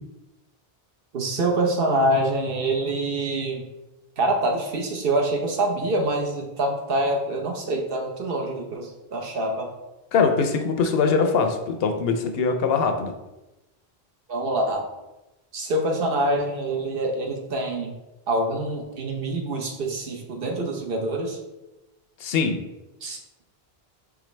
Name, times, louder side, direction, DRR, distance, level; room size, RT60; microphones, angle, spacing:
voice 1, 1.1-3.6 4.2-9.7 14.3-14.9 15.5-17.9 18.3-21.4 23.0-23.2, right 1 dB, 65° right, 1 dB, 1.0 m, -25 dB
voice 2, 10.1-13.1 22.2-22.6, left 5 dB, 75° left, 6 dB, 0.8 m, -22 dB
4.8 x 3.4 x 3.2 m, 0.99 s
omnidirectional pair, 1.0 m